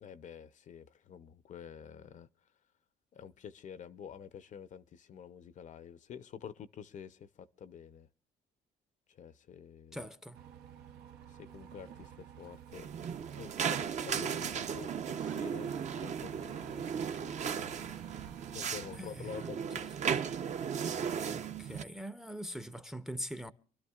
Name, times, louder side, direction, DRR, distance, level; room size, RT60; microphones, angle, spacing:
voice 1, 0.0-2.3 3.1-8.1 9.2-10.1 11.4-12.9 13.4-16.8 17.2-17.3 18.5-19.9, left 8 dB, 50° left, 0.6 m, -48 dB
voice 2, 9.9-10.4 19.0-19.9 21.3-23.5, equal, ahead, 0.6 m, -43 dB
sound 1, 10.3-19.0, right 8 dB, 80° right, 0.8 m, -52 dB
sound 2, 12.7-21.8, right 7 dB, 45° right, 0.7 m, -36 dB
27.0 x 12.0 x 2.4 m
cardioid pair, 110°, 17 cm